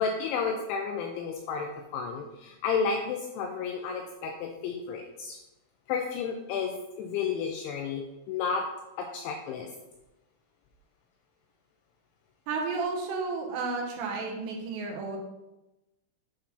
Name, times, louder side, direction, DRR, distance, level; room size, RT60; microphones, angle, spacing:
voice 1, 0.0-5.4 5.9-8.7 9.0-9.7, left 5 dB, 90° left, 3 dB, 2.6 m, -32 dB
voice 2, 12.5-15.2, right 4 dB, 75° right, 1 dB, 2.8 m, -32 dB
8.6 x 3.7 x 5.8 m, 1.0 s
omnidirectional pair, 6.0 m